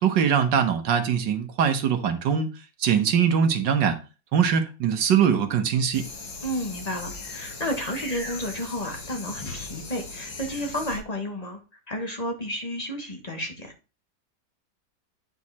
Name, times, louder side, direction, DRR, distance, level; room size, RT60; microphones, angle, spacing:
voice 1, 0.0-2.5 2.8-4.0 4.3-6.0, right 7 dB, 75° right, 1.8 m, -22 dB
sound 1, 5.9-11.0, left 3 dB, 75° left, 2.8 m, -38 dB
voice 2, 6.4-11.6 11.9-13.7, equal, 25° left, 1.5 m, -31 dB
9.4 x 4.7 x 4.2 m
omnidirectional pair, 2.0 m